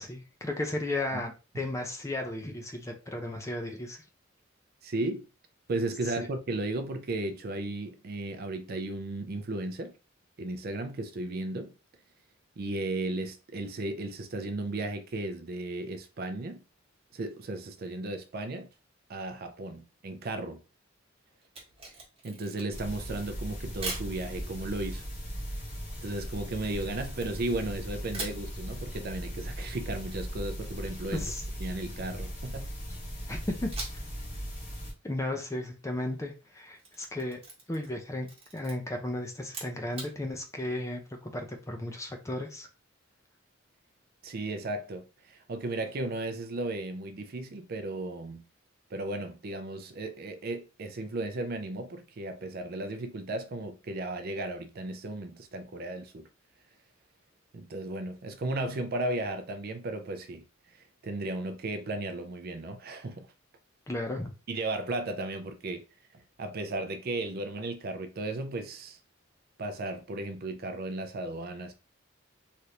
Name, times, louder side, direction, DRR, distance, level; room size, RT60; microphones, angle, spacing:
voice 1, 0.0-4.0 6.2-6.3 31.1-31.4 33.3-33.7 35.0-37.4 37.7-42.7 63.9-64.3, left 1 dB, 15° left, 0.5 m, -34 dB
voice 2, 4.8-5.3 5.7-9.9 10.4-11.7 12.6-16.6 17.1-18.7 19.1-20.6 22.2-25.0 26.0-31.3 31.6-32.7 44.2-48.5 48.9-56.3 57.5-63.3 64.5-65.8 66.4-69.0 69.6-71.7, right 2 dB, 50° right, 0.5 m, -35 dB
Camera, 21.4-22.9 23.8-24.1 26.6-27.7 28.1-28.4 31.1-32.6 33.7-34.2 34.5-34.6 36.6-38.0 38.2-38.7 39.4-40.1, right 3 dB, 30° right, 1.2 m, -41 dB
sound 1, 22.7-34.9, equal, 35° left, 1.1 m, -38 dB
3.3 x 2.5 x 2.8 m
head